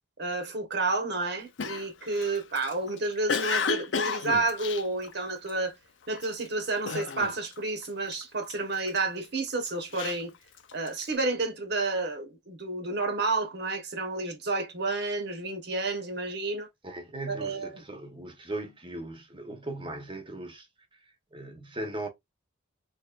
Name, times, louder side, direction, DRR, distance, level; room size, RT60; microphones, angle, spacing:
voice 1, 0.2-5.7 6.1-10.3 10.7-16.7 17.3-17.8, right 3 dB, 55° right, 1.1 m, -30 dB
Cough, 1.6-5.7 6.2-6.5 6.9-7.6 7.8-9.0 9.5-11.0, left 5 dB, 65° left, 0.5 m, -32 dB
voice 2, 16.8-21.0 21.3-22.1, right 1 dB, 25° right, 1.0 m, -38 dB
4.4 x 3.1 x 2.4 m
head